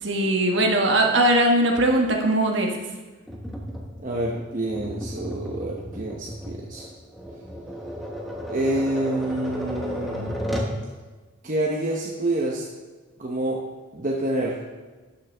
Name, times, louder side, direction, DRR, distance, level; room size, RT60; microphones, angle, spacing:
voice 1, 0.0-2.7, right 1 dB, 60° right, 1 dB, 1.4 m, -20 dB
Tap, 3.3-10.8, equal, ahead, 1.0 m, -33 dB
voice 2, 4.0-6.9 8.5-10.4 11.4-12.7 13.2-13.6 13.9-14.6, right 1 dB, 40° right, -2 dB, 0.9 m, -27 dB
13.0 x 6.5 x 3.4 m, 1.3 s
head